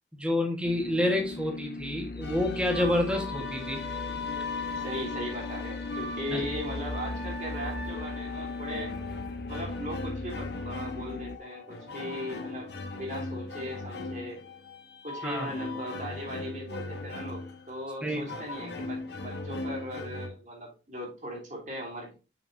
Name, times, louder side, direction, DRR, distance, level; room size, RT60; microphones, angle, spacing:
voice 1, 0.1-3.8 6.3-6.4 15.2-15.5 18.0-18.4, left 1 dB, 5° right, 0 dB, 1.6 m, -28 dB
sound 1, 0.6-11.4, left 3 dB, 60° left, 0.5 m, -39 dB
sound 2, 2.2-20.3, left 3 dB, 75° left, 1.4 m, -38 dB
voice 2, 4.8-8.9 9.5-14.4 15.0-22.1, equal, 45° right, -1 dB, 3.1 m, -38 dB
7.2 x 5.7 x 2.8 m, 0.31 s
head